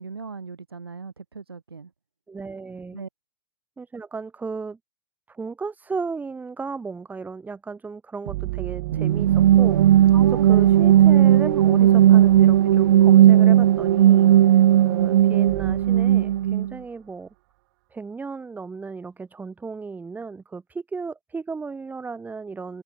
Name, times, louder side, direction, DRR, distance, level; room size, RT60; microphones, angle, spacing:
voice 1, 0.0-1.9 2.9-3.1 10.1-10.7, right 5 dB, 85° right, 1.5 m, -37 dB
voice 2, 2.3-3.0 3.8-4.8 5.3-17.3 17.9-22.8, right 4 dB, 15° right, 3.9 m, -35 dB
sound 1, 8.2-16.9, right 22 dB, 55° right, 3.4 m, -34 dB
sound 2, 8.9-16.7, right 11 dB, 70° right, 0.4 m, -16 dB
figure-of-eight pair, 95°, 12 cm